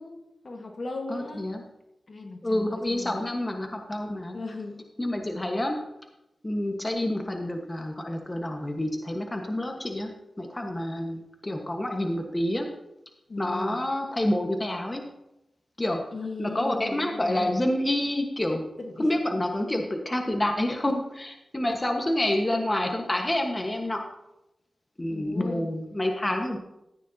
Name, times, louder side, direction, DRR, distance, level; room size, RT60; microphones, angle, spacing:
voice 1, 0.0-1.5 2.1-3.2 4.3-4.9 13.3-13.8 16.1-17.5 18.8-19.1 25.1-25.7, left 3 dB, 60° left, 3 dB, 1.5 m, -37 dB
voice 2, 1.1-1.6 2.4-4.4 5.0-5.8 6.4-10.1 10.4-12.7 13.4-15.0 15.8-16.0 16.4-18.6 19.0-24.1 25.0-26.6, left 1 dB, 25° left, 3 dB, 1.4 m, -28 dB
14.0 x 9.4 x 2.8 m, 0.88 s
cardioid pair, 55°, 0 cm